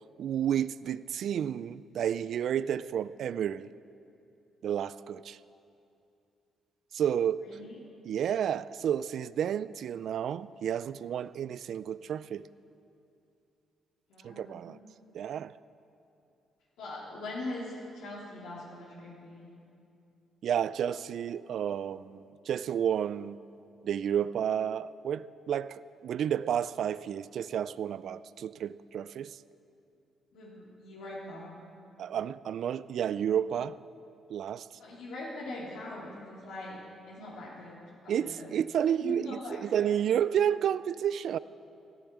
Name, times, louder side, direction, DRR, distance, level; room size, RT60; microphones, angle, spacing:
voice 1, 0.2-3.7 4.6-5.4 6.9-7.5 8.0-12.4 14.2-14.8 15.1-15.5 20.4-23.4 23.8-29.4 32.0-33.8 34.3-34.7 38.1-41.4, right 9 dB, 65° right, 17 dB, 0.4 m, -31 dB
voice 2, 7.4-7.7 14.1-14.7 16.8-19.5 30.3-31.5 34.8-36.8 37.1-38.5 38.8-40.0, left 2 dB, 85° left, -6 dB, 2.7 m, -42 dB
15.0 x 10.5 x 8.7 m, 2.7 s
cardioid pair, 90°, 0 cm